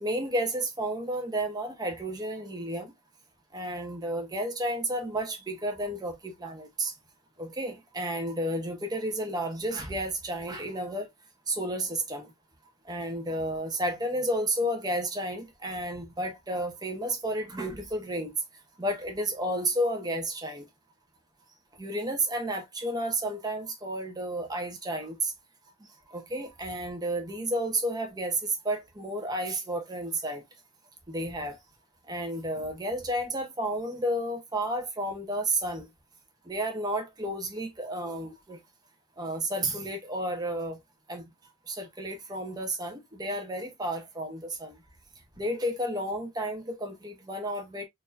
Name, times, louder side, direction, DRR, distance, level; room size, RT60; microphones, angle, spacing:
voice 1, 0.0-2.9 3.5-6.9 7.4-11.1 11.5-12.3 12.9-18.3 18.8-20.6 21.8-25.3 26.1-30.4 31.1-31.6 32.1-35.9 36.5-38.6 39.2-40.8 41.1-41.2 41.7-44.7 45.4-47.8, right 1 dB, 20° right, 1.1 m, -31 dB
4.5 x 2.8 x 2.5 m
head